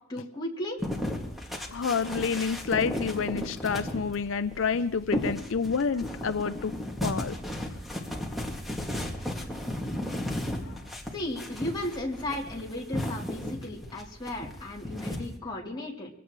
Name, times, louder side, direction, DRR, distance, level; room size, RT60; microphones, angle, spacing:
voice 1, 0.1-0.8 11.1-16.1, left 1 dB, 20° left, -3 dB, 3.0 m, -35 dB
sound 1, 0.8-15.3, left 1 dB, ahead, 2.1 m, -35 dB
voice 2, 1.7-6.7 7.0-7.4 10.1-10.3 10.6-10.8, left 5 dB, 70° left, 11 dB, 0.5 m, -29 dB
24.5 x 17.0 x 3.1 m, 0.83 s
head